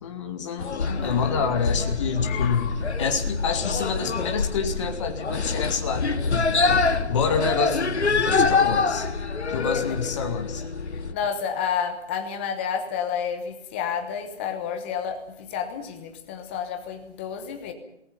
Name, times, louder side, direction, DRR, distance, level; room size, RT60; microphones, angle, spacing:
voice 1, 0.0-2.7 3.0-9.1 9.5-10.6, left 6 dB, 25° left, 5 dB, 2.3 m, -28 dB
sound 1, 0.6-11.1, left 4 dB, 70° left, 2.1 m, -25 dB
voice 2, 2.2-2.8 9.6-9.8 10.9-17.7, left 7 dB, 10° left, 7 dB, 1.0 m, -30 dB
27.0 x 19.5 x 5.5 m, 0.78 s
hypercardioid pair, 160°, 35 cm